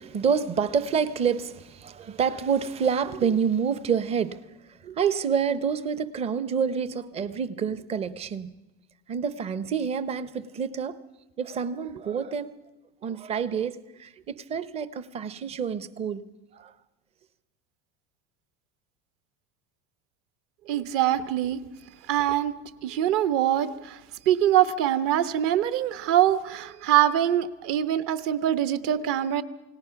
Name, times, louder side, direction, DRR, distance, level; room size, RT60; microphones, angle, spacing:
voice 1, 0.0-4.4 4.8-8.5 9.1-11.0 11.4-12.5 13.0-16.2 16.5-16.7, right 6 dB, 20° right, 0.7 m, -28 dB
voice 2, 20.7-21.6 22.1-22.5 22.8-24.0 24.3-29.4, right 11 dB, 45° right, 1.1 m, -23 dB
28.5 x 18.0 x 5.8 m
cardioid pair, 175°, 31 cm